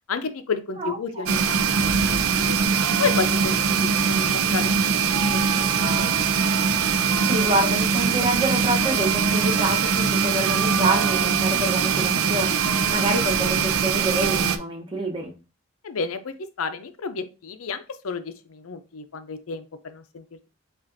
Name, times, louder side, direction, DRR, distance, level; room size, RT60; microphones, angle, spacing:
voice 1, 0.1-1.7 1.9-2.6 3.0-4.7 5.3-6.4 15.8-20.2, left 5 dB, 85° left, 0.6 m, -31 dB
voice 2, 0.8-1.3 6.9-12.6 12.9-15.3, right 1 dB, 25° right, 1.0 m, -27 dB
sound 1, 1.3-14.6, right 6 dB, 85° right, 0.5 m, -22 dB
7.3 x 2.5 x 2.6 m
head